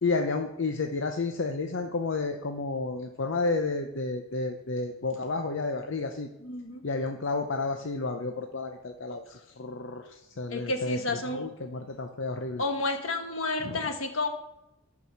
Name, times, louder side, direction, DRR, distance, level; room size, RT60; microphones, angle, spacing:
voice 1, 0.0-6.3 6.8-9.2 9.6-12.6 13.6-13.8, left 3 dB, 60° left, 4 dB, 0.7 m, -31 dB
voice 2, 6.4-6.8 9.1-9.2 10.5-11.5 12.6-14.3, left 2 dB, 80° left, 4 dB, 1.4 m, -31 dB
13.5 x 4.8 x 5.8 m, 0.90 s
head